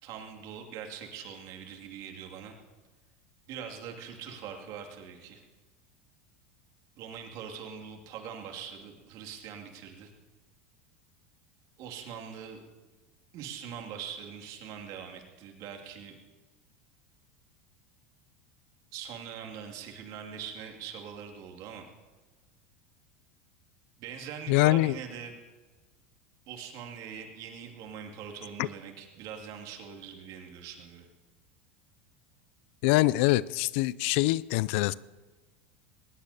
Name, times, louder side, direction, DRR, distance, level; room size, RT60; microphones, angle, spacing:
voice 1, 0.0-2.5 3.5-5.4 7.0-10.1 11.8-12.6 13.3-16.2 18.9-21.9 24.0-25.3 26.5-31.1, right 7 dB, 55° right, 2.5 m, -42 dB
voice 2, 24.5-25.0 28.6-28.7 32.8-34.9, left 18 dB, 65° left, 0.4 m, -24 dB
20.0 x 19.0 x 2.9 m
hypercardioid pair, 90°, 7 cm